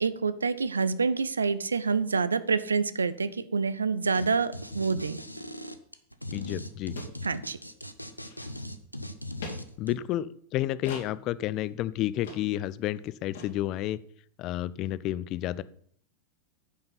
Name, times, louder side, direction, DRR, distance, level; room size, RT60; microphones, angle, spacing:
voice 1, 0.0-5.2 7.2-7.6, right 5 dB, 75° right, 15 dB, 0.5 m, -27 dB
sound 1, 4.1-4.3 4.5-9.9, left 1 dB, 90° left, 0.6 m, -39 dB
sound 2, 6.2-6.3 6.5-6.6 6.9-7.2 7.5-7.7 8.1-8.8 9.4-9.6 10.8-11.1 11.6-11.7 12.2-12.4 12.7-12.8 13.0-13.1 13.3-13.5, left 3 dB, 60° left, 2.4 m, -42 dB
voice 2, 6.3-6.9 9.8-14.0 14.4-15.6, left 14 dB, 40° left, 18 dB, 0.4 m, -31 dB
9.4 x 5.6 x 5.7 m, 0.62 s
figure-of-eight pair, 90°, 0 cm